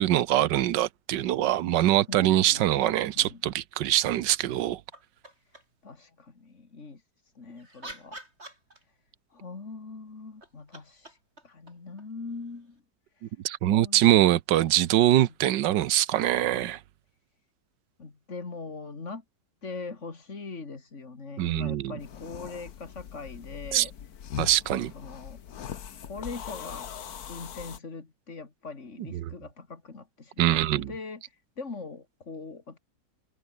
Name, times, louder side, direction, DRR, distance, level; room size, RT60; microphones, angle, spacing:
voice 1, 0.0-4.8 13.4-16.8 21.4-21.9 23.7-23.9 24.4-24.9 29.2-29.3 30.4-30.9, right 13 dB, 80° right, 1.5 m, -23 dB
voice 2, 2.1-3.4 5.8-8.2 9.3-11.2 11.4-12.8 13.1-13.3 13.7-14.0 18.0-19.2 19.6-23.9 24.7-25.4 26.0-26.9 27.3-32.8, left 4 dB, 40° left, 2.9 m, -41 dB
sound 1, 4.9-5.9 7.3-9.2 10.2-12.8 14.9-15.0, right 1 dB, 35° right, 7.2 m, -48 dB
sound 2, 22.0-27.8, left 9 dB, 60° left, 1.6 m, -41 dB
omnidirectional pair, 1.9 m